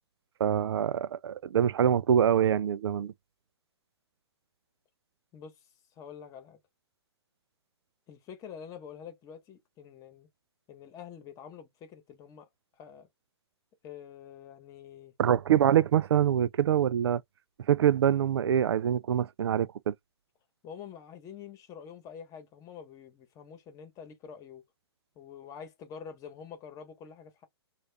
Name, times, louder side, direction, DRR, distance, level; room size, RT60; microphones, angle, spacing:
voice 1, 0.4-3.1 15.2-17.2 17.7-19.9, right 9 dB, 70° right, 0.4 m, -25 dB
voice 2, 5.3-5.7 6.0-6.6 8.1-10.3 10.7-12.5 12.8-13.1 13.8-15.1 20.6-24.6 25.1-27.5, left 7 dB, 25° left, 1.1 m, -46 dB
3.1 x 2.4 x 3.4 m
hypercardioid pair, 130°, 14 cm